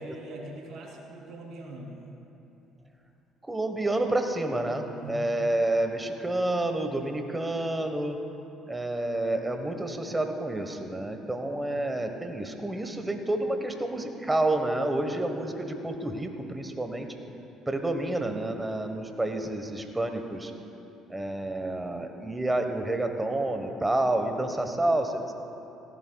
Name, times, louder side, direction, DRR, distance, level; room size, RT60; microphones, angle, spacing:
voice 1, 0.0-2.2 4.9-5.3, right 1 dB, 65° right, -2 dB, 2.8 m, -42 dB
voice 2, 3.4-8.2 8.7-17.1 17.7-20.5 21.1-25.3, right 1 dB, 15° right, 6 dB, 1.1 m, -29 dB
17.0 x 15.0 x 2.3 m, 2.9 s
supercardioid pair, 85°, 0 cm